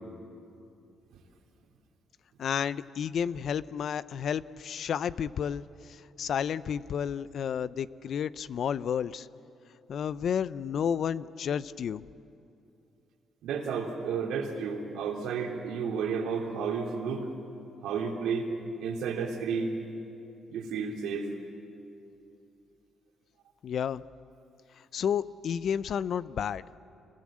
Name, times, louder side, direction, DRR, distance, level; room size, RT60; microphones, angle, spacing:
voice 1, 2.4-9.3 9.9-12.0 23.6-24.0 24.9-26.6, left 8 dB, 60° left, 17 dB, 0.5 m, -31 dB
voice 2, 13.4-17.3 17.8-18.5 18.8-19.8 20.5-21.3, right 5 dB, 85° right, 1 dB, 3.0 m, -32 dB
27.0 x 20.0 x 7.5 m, 2.7 s
cardioid pair, 90°, 0 cm